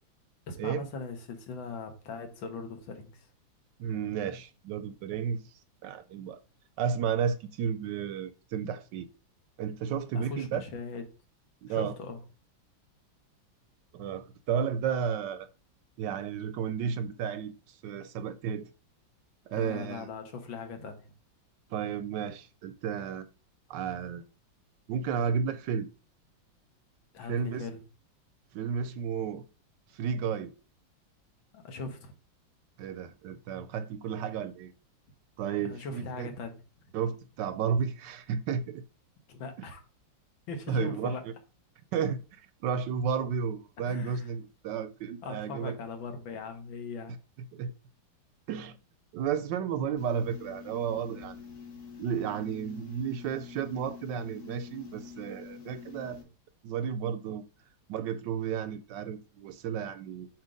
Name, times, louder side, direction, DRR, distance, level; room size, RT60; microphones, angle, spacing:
voice 1, 0.5-3.3 10.1-11.1 11.7-12.2 19.5-21.1 27.1-27.8 31.5-32.1 35.6-36.6 39.3-39.8 40.5-41.2 43.8-44.3 45.2-47.2, left 4 dB, 75° left, 1.9 m, -40 dB
voice 2, 3.8-5.4 5.8-6.4 6.8-9.1 9.6-10.6 11.6-11.9 13.9-15.5 16.0-18.7 19.5-20.1 21.7-23.3 23.7-24.2 24.9-25.9 27.3-27.7 28.5-29.4 29.9-30.5 32.8-34.7 35.4-36.3 36.9-38.8 39.6-39.7 40.7-41.1 41.9-45.7 47.5-47.7 48.5-48.8 49.1-51.4 52.0-56.2 56.6-57.5 57.9-60.3, right 7 dB, 75° right, 1.1 m, -32 dB
sound 1, 50.0-56.2, left 6 dB, 45° left, 1.7 m, -46 dB
7.3 x 3.1 x 5.1 m
omnidirectional pair, 2.1 m